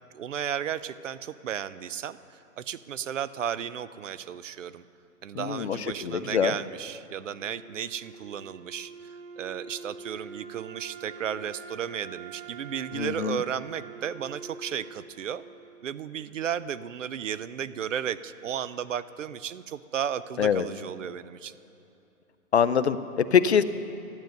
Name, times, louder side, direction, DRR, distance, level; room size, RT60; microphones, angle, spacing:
voice 1, 0.1-4.8 5.2-15.4 15.8-21.5, right 9 dB, 60° right, 16 dB, 0.5 m, -34 dB
voice 2, 5.3-6.5 12.9-13.4 20.4-20.7 22.5-23.6, left 7 dB, 50° left, 13 dB, 0.5 m, -24 dB
Wind instrument woodwind instrument, 7.3-16.3, right 5 dB, 40° right, 1.0 m, -45 dB
12.0 x 9.1 x 6.4 m, 2.9 s
hypercardioid pair, 170°, 44 cm